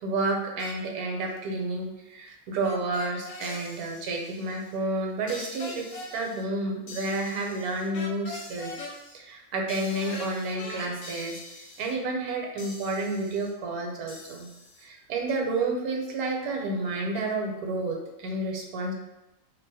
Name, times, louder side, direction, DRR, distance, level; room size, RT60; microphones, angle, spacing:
voice 1, 0.0-8.7 9.1-14.5 14.8-18.9, right 2 dB, 75° right, 1 dB, 1.1 m, -30 dB
sound 1, 0.6-0.8 2.6-3.6 5.3-6.1 7.9-9.0 9.9-10.9, left 3 dB, 75° left, 1.0 m, -39 dB
sound 2, 3.4-4.8 5.3-6.4 6.9-7.9 8.3-9.1 9.7-10.5 11.0-11.9 12.6-13.5 14.1-14.8, left 3 dB, 55° left, 0.8 m, -46 dB
2.7 x 2.0 x 3.9 m, 0.98 s
omnidirectional pair, 1.7 m